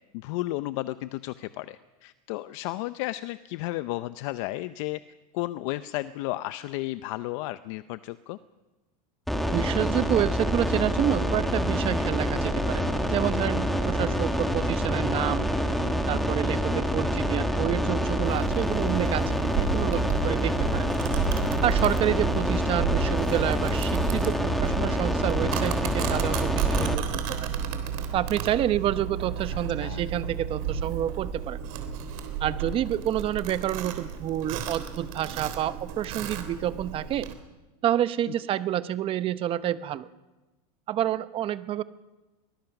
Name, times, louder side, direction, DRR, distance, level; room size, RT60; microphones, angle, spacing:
voice 1, 0.1-5.0 5.3-8.4 29.5-30.1, left 17 dB, 55° left, 13 dB, 0.7 m, -33 dB
sound 1, 9.3-26.9, equal, ahead, 1.8 m, -27 dB
voice 2, 9.5-12.8 13.1-15.5 16.1-20.9 21.6-27.5 28.1-31.6 32.4-37.3 37.8-40.1 40.9-41.8, right 11 dB, 30° right, 14 dB, 0.8 m, -28 dB
Domestic sounds home sounds, 18.2-37.3, right 7 dB, 60° right, 3.5 m, -32 dB
23.5 x 19.5 x 6.0 m, 1.1 s
supercardioid pair, 150°, 20 cm